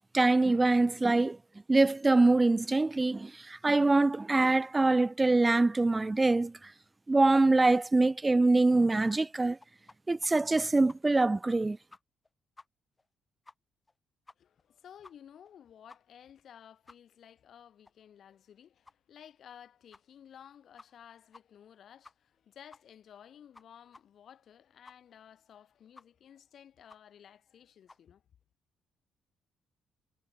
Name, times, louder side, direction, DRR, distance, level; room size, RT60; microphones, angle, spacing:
voice 1, 0.1-1.4 1.7-6.5 7.1-9.6 10.1-11.8, right 2 dB, 20° right, 0.4 m, -24 dB
sound 1, 9.1-10.0 10.2-10.3 10.6-11.3 11.6-11.7 11.9-12.3 12.6-12.7 13.0-13.1 13.4-13.5 13.9-14.0 14.3-14.6 15.0-15.1 15.4-15.5 15.9-16.0 16.4-16.5 16.9-17.0 17.4-17.5 17.8-17.9 18.3-18.4 18.8-18.9 19.4-19.5 19.9-20.0 20.4-20.5 20.8-21.0 21.3-21.4 21.7-21.8 22.0-22.4 22.7-22.8 23.2-23.3 23.5-23.6 23.9-24.0 24.3-24.4 24.8-24.9 25.3-25.4 25.9-26.0 26.4-26.5 26.9-27.0 27.4-27.5 27.9-28.0, left 3 dB, 20° left, 1.7 m, -54 dB
voice 2, 14.4-28.2, left 9 dB, 60° left, 4.4 m, -55 dB
cardioid pair, 90°, 0 cm